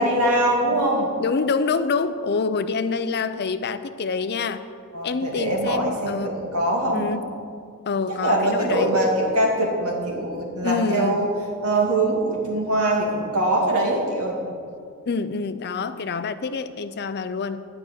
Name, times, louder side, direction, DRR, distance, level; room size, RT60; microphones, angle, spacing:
voice 1, 0.0-1.1 4.9-7.1 8.2-11.3 11.6-14.4, right 1 dB, 80° right, -1 dB, 2.4 m, -22 dB
voice 2, 1.2-4.6 5.0-6.3 6.9-7.2 7.9-8.9 10.6-11.2 15.1-17.7, left 4 dB, 50° left, 12 dB, 0.5 m, -26 dB
11.0 x 6.0 x 9.0 m, 2.3 s
head